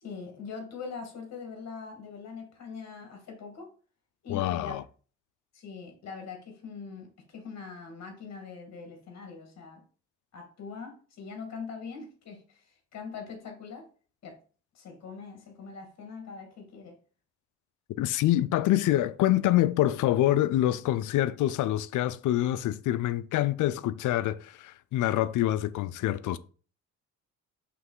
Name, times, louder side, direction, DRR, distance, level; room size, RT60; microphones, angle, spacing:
voice 1, 0.0-3.7 4.2-4.8 5.5-9.8 10.3-13.9 14.2-14.4 14.7-17.0, left 5 dB, 60° left, 2.1 m, -42 dB
voice 2, 4.3-4.8 18.0-26.4, left 14 dB, 80° left, 0.5 m, -26 dB
5.9 x 3.2 x 5.5 m
cardioid pair, 90°, 30 cm